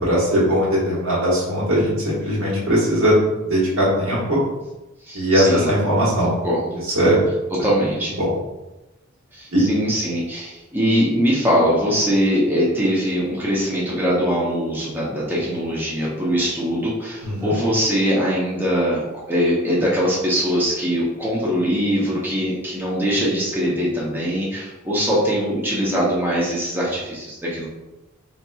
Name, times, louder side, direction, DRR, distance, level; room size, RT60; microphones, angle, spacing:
voice 1, 0.0-3.1 3.4-4.4 5.1-6.3 6.9-7.2 8.2-8.3 9.5-9.6 17.2-17.5, equal, 80° right, -7 dB, 1.4 m, -19 dB
voice 2, 5.1-5.7 6.4-6.8 7.6-8.1 9.3-19.0 19.3-27.7, equal, 10° right, -6 dB, 0.6 m, -22 dB
3.9 x 2.8 x 2.3 m, 1.0 s
head